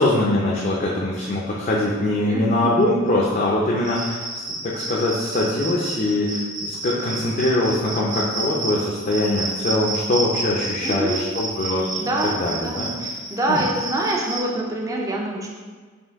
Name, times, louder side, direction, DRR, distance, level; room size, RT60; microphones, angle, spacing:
voice 1, 0.0-4.3 4.6-11.8 12.3-12.9 13.5-13.6, left 1 dB, 40° left, -4 dB, 0.5 m, -22 dB
voice 2, 2.2-2.8 10.8-11.2 12.0-15.5, right 1 dB, 15° right, -1 dB, 0.5 m, -26 dB
Cricket, 3.8-14.4, right 2 dB, 75° right, 0.9 m, -30 dB
4.4 x 2.6 x 3.5 m, 1.5 s
head